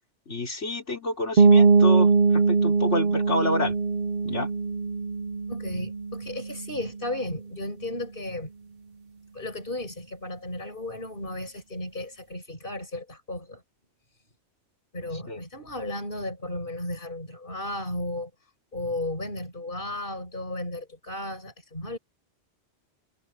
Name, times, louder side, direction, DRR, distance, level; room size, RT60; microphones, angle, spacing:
voice 1, 0.3-3.8 4.2-4.5 15.3-15.4, left 2 dB, 85° left, 4.5 m, -29 dB
sound 1, 1.4-7.0, right 4 dB, 55° right, 1.2 m, -21 dB
voice 2, 5.5-8.5 9.3-13.6 14.9-18.3 18.7-22.0, left 1 dB, 50° left, 7.0 m, -34 dB
omnidirectional pair, 1.2 m